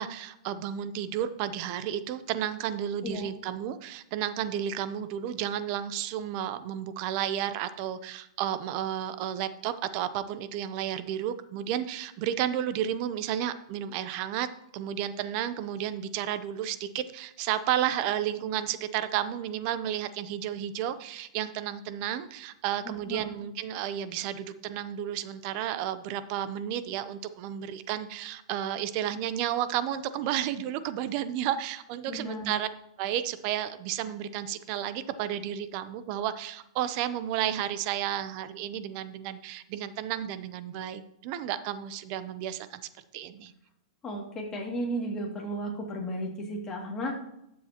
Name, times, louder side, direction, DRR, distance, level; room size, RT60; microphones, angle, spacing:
voice 1, 0.0-14.5 14.7-32.7 33.0-43.5, right 10 dB, 45° right, 13 dB, 0.7 m, -32 dB
voice 2, 22.8-23.3 32.1-32.5 44.0-47.2, equal, 20° left, -1 dB, 2.4 m, -34 dB
12.5 x 7.4 x 3.0 m, 0.80 s
hypercardioid pair, 140°, 3 cm